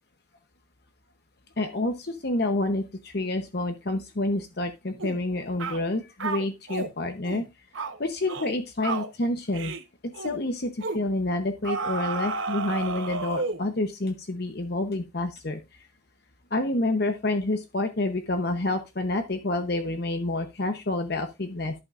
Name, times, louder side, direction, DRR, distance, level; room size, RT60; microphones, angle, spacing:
voice 1, 1.6-7.5 8.0-9.7 10.0-15.6 16.5-21.7, left 2 dB, 50° left, 7 dB, 0.9 m, -28 dB
sound 1, 5.0-5.2 5.6-5.8 6.2-6.9 7.2-7.5 7.7-8.0 8.3-8.6 8.8-9.1 9.5-9.8 10.1-10.4 10.8-11.0 11.6-13.7, right 4 dB, 70° right, 1.1 m, -32 dB
11.0 x 8.5 x 2.5 m, 0.24 s
head